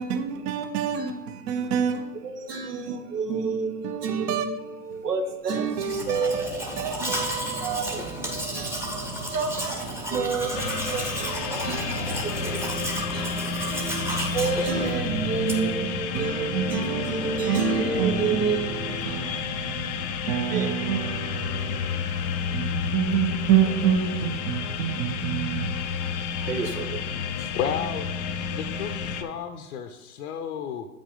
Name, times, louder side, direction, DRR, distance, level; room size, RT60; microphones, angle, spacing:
voice 1, 0.0-2.3 3.8-4.6 4.9-5.0 5.6-8.5 9.6-10.1 11.2-11.5 12.0-12.3 14.9-26.3, right 8 dB, 40° right, 0.7 m, -29 dB
voice 2, 2.2-8.0 8.5-9.6 10.1-19.2 20.5-20.7 26.4-27.0 27.4-27.5, right 5 dB, 80° right, 1.2 m, -30 dB
Domestic sounds home sounds, 5.7-15.8, right 1 dB, 5° right, 0.8 m, -32 dB
sound 1, 10.5-29.2, left 6 dB, 30° left, 0.4 m, -31 dB
voice 3, 27.5-28.1 28.5-30.9, left 7 dB, 60° left, 0.7 m, -32 dB
8.4 x 5.2 x 3.7 m
hypercardioid pair, 110°, 47 cm